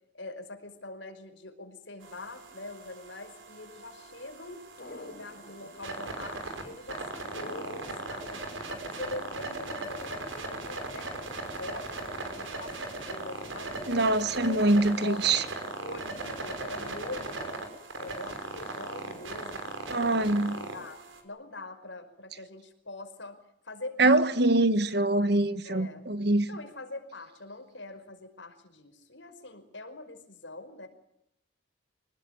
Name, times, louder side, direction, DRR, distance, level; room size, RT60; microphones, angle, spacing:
voice 1, 0.1-4.6 4.9-14.1 14.4-19.6 20.0-21.0 21.2-23.4 23.6-24.5 25.0-25.2 25.6-26.0 26.5-30.9, left 2 dB, 65° left, 5.2 m, -44 dB
sound 1, 2.0-21.2, right 2 dB, 80° right, 6.0 m, -39 dB
sound 2, 4.8-5.7 7.3-8.3, left 1 dB, 50° left, 7.3 m, -43 dB
voice 2, 13.9-15.4 19.9-20.5 24.0-26.5, right 2 dB, 55° right, 1.4 m, -24 dB
26.5 x 19.5 x 9.5 m
head